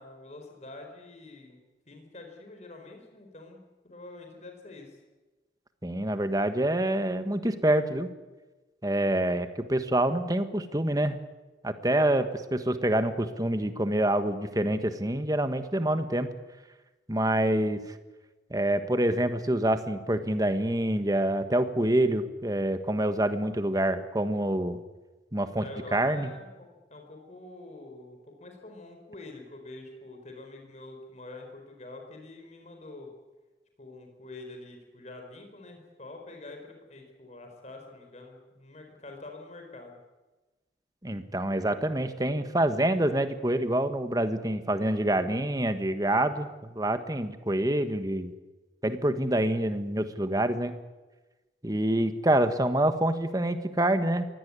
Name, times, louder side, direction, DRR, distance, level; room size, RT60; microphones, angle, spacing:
voice 1, 0.0-5.0 25.4-33.1 33.8-40.0, left 2 dB, 40° left, 4 dB, 4.3 m, -46 dB
voice 2, 5.8-8.1 8.8-11.2 11.6-16.3 17.1-18.0 18.5-24.8 25.3-26.3 41.0-48.3 48.8-50.7 51.6-54.3, right 1 dB, 20° right, 9 dB, 1.5 m, -26 dB
23.5 x 17.0 x 9.8 m, 1.2 s
head